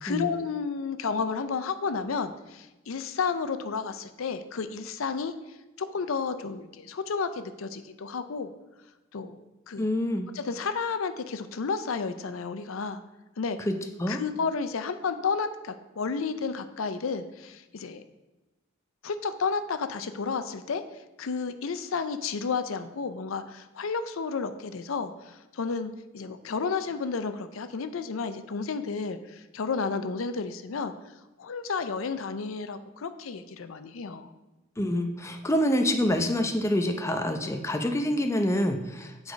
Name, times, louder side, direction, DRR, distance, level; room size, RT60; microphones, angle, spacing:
voice 1, 0.0-5.3 5.8-8.5 9.1-9.4 9.7-9.9 10.3-13.0 13.4-13.6 14.1-18.0 19.0-20.8 21.2-30.9 31.4-34.3, left 5 dB, 80° left, 10 dB, 0.5 m, -32 dB
voice 2, 9.8-10.3 13.7-14.2 34.8-39.3, left 1 dB, 15° left, 5 dB, 0.6 m, -27 dB
8.3 x 4.9 x 5.1 m, 1.1 s
head